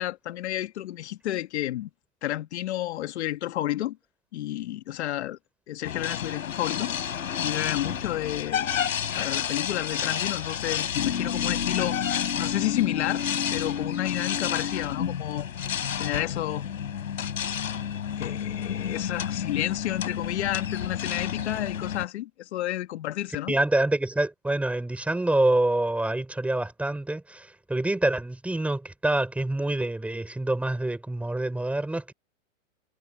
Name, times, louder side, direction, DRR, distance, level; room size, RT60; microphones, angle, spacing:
voice 1, 0.0-1.9 2.2-4.0 4.3-5.4 5.7-6.9 7.4-8.7 9.2-13.2 13.5-15.5 15.9-16.6 17.2-17.3 18.2-23.6, left 14 dB, 55° left, 2.0 m, -31 dB
sound 1, 5.8-22.1, left 8 dB, 80° left, 5.9 m, -30 dB
voice 2, 23.5-32.1, right 2 dB, 5° right, 5.5 m, -26 dB
hypercardioid pair, 145°, 40 cm